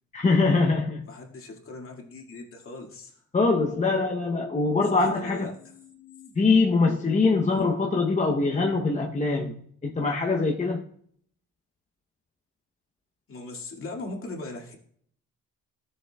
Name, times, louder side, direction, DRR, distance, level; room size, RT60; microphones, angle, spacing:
voice 1, 0.1-1.0 3.3-5.5 6.4-9.5 9.8-10.8, left 3 dB, 25° left, 0.8 m, -23 dB
voice 2, 1.1-3.2 4.8-6.3 7.4-7.7 13.3-14.7, left 2 dB, 45° left, 2.2 m, -40 dB
13.0 x 6.6 x 2.3 m
cardioid pair, 90°, 30 cm